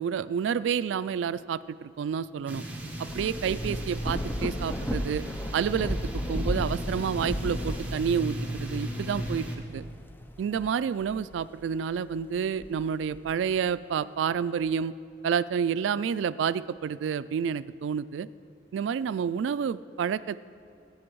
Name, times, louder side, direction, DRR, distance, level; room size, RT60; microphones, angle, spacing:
voice 1, 0.0-2.6 3.1-5.2 5.5-6.0 6.3-9.5 9.7-9.8 10.4-14.9 15.2-18.3 18.7-20.5, right 7 dB, 85° right, 16 dB, 0.3 m, -29 dB
sound 1, 2.5-9.6, right 1 dB, 10° right, 1.3 m, -37 dB
Thunder / Rain, 2.7-11.6 12.2-13.5, equal, 10° left, 0.5 m, -35 dB
19.0 x 8.5 x 4.6 m, 2.5 s
head